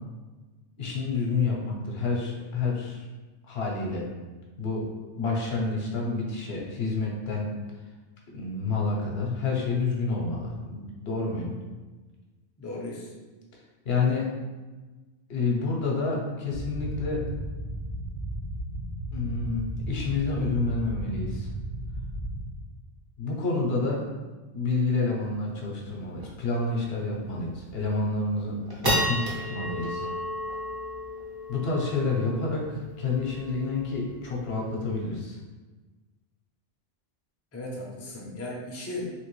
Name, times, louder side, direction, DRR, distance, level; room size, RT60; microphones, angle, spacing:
voice 1, 0.8-3.1 3.4-4.0 4.6-4.8 5.2-7.5 8.3-11.5 13.9-14.3 15.3-17.2 19.1-21.5 23.2-24.0 24.5-30.0 31.5-35.4, left 3 dB, 70° left, -2 dB, 0.9 m, -29 dB
voice 2, 12.6-13.1 37.5-39.1, left 1 dB, 20° left, -4 dB, 0.5 m, -36 dB
sound 1, 16.5-22.5, right 1 dB, 55° right, 0.8 m, -35 dB
sound 2, 25.3-25.4 25.7-25.8 26.2-26.4 26.9-27.0 27.6-27.9 28.4-34.9, equal, 25° right, 0.6 m, -33 dB
3.2 x 2.9 x 3.1 m, 1.3 s
omnidirectional pair, 1.1 m